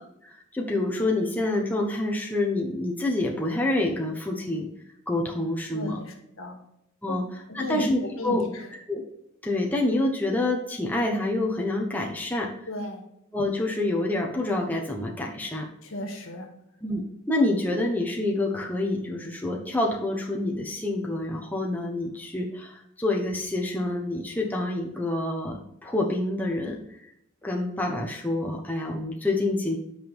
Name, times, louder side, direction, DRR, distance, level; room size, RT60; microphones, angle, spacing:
voice 1, 0.2-4.7 5.1-6.0 7.0-7.2 7.5-8.4 8.9-9.0 9.4-12.5 13.3-15.7 16.8-26.8 27.4-29.8, left 2 dB, 10° left, -1 dB, 1.0 m, -27 dB
voice 2, 5.7-6.6 7.1-7.2 7.5-7.8 8.2-8.7 12.7-13.0 15.8-16.5, left 1 dB, 80° left, 3 dB, 1.7 m, -34 dB
8.6 x 5.3 x 3.5 m, 0.80 s
head